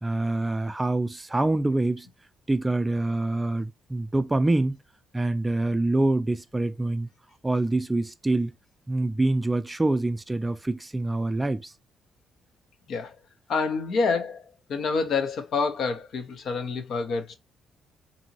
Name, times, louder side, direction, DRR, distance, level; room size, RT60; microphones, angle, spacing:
voice 1, 0.0-2.1 2.5-4.8 5.1-7.1 7.4-8.5 8.9-11.7, right 2 dB, 15° right, 0.3 m, -25 dB
voice 2, 13.5-14.4 14.7-17.3, left 4 dB, 65° left, 0.6 m, -27 dB
2.7 x 2.7 x 2.8 m
cardioid pair, 90°, 0 cm